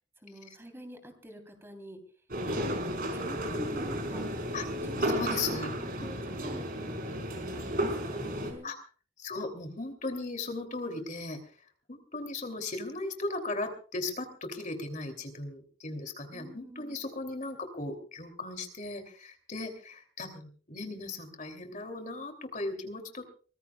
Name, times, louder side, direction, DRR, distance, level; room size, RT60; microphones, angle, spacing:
voice 1, 0.2-2.0 2.7-4.3 4.8-5.3 5.8-8.7 16.3-17.0, equal, 10° right, 5 dB, 3.5 m, -47 dB
sound 1, 2.3-8.5, equal, 50° right, 4.8 m, -33 dB
voice 2, 5.0-5.7 6.0-6.1 8.6-8.8 9.2-11.4 11.9-23.3, left 3 dB, 40° left, 6 dB, 2.9 m, -37 dB
24.5 x 20.5 x 2.3 m, 0.40 s
head